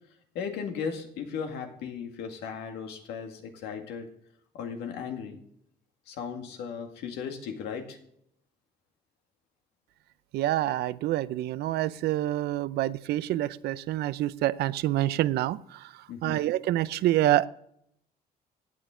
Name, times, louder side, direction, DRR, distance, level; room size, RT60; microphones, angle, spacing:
voice 1, 0.3-4.1 4.5-5.4 6.1-8.0 16.1-16.4, left 6 dB, 85° left, 4 dB, 2.1 m, -36 dB
voice 2, 10.3-15.9 16.2-17.5, right 14 dB, 75° right, 16 dB, 0.6 m, -27 dB
16.0 x 9.2 x 3.8 m, 0.72 s
cardioid pair, 110°, 17 cm